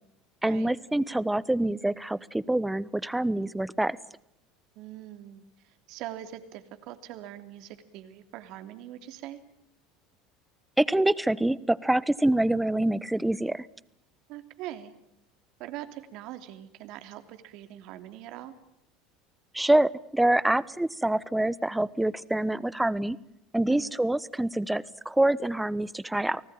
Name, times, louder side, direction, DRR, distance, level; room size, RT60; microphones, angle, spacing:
voice 1, 0.4-4.0 10.8-13.7 19.5-23.2 23.5-26.4, right 1 dB, 5° right, 19 dB, 1.1 m, -26 dB
voice 2, 4.7-9.4 14.3-14.9 15.6-18.5 23.7-24.0, right 13 dB, 60° right, 9 dB, 2.9 m, -42 dB
30.0 x 19.0 x 8.9 m, 0.79 s
hypercardioid pair, 75°, 0 cm